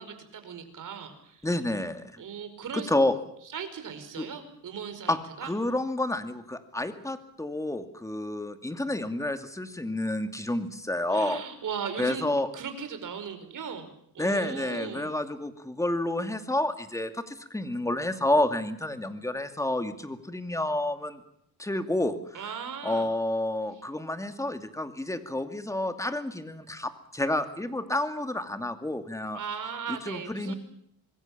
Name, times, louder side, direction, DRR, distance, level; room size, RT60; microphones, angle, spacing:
voice 1, 0.0-1.5 2.2-2.9 3.5-5.5 11.1-12.2 12.5-13.9 14.1-15.1 22.3-23.1 29.3-30.6, right 7 dB, 60° right, 8 dB, 5.1 m, -38 dB
voice 2, 1.4-2.2 2.7-3.1 4.2-4.3 5.1-11.4 12.0-12.5 14.2-21.2 21.6-22.4 22.8-29.4 29.9-30.5, left 1 dB, 10° left, 8 dB, 2.5 m, -29 dB
26.0 x 21.0 x 7.4 m, 0.71 s
cardioid pair, 110°, 35 cm